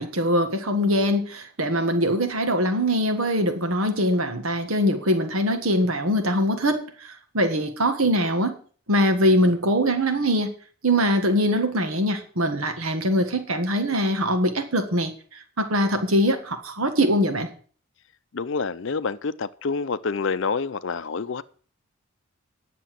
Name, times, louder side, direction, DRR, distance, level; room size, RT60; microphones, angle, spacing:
voice 1, 0.0-8.5 8.9-10.5 10.8-17.5, equal, 75° right, 1.6 m, -22 dB
voice 2, 18.3-21.4, left 4 dB, 60° left, 0.5 m, -27 dB
10.5 x 6.9 x 7.6 m
head